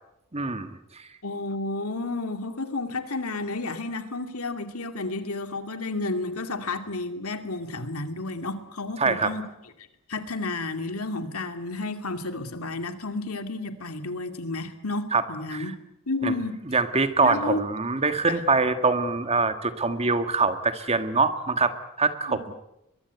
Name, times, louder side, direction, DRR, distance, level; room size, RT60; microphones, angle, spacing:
voice 1, 0.3-0.7 9.0-9.3 15.1-15.2 15.5-15.6 16.2-16.3 16.7-22.4, right 4 dB, 30° right, 9 dB, 1.7 m, -24 dB
voice 2, 1.2-9.5 10.1-15.7 16.1-16.6 17.2-17.6 18.3-18.4 22.3-22.4, left 2 dB, 80° left, 7 dB, 2.4 m, -31 dB
23.0 x 22.5 x 8.3 m, 0.87 s
head